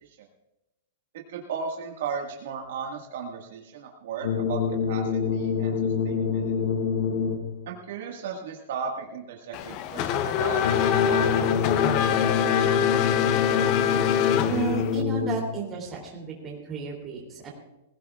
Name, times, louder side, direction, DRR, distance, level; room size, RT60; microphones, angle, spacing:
voice 1, 1.3-4.6 4.9-5.8 6.0-6.5 7.7-12.0, right 5 dB, 60° right, 0 dB, 1.6 m, -36 dB
sound 1, 4.2-7.7 10.6-15.7, left 6 dB, 70° left, 1.0 m, -26 dB
Race car auto racing / Accelerating revving vroom, 9.5-15.0, left 9 dB, 30° left, 0.5 m, -25 dB
voice 2, 14.5-17.5, right 6 dB, 15° right, -1 dB, 2.9 m, -33 dB
20.5 x 16.0 x 2.4 m, 0.95 s
supercardioid pair, 175°, 0 cm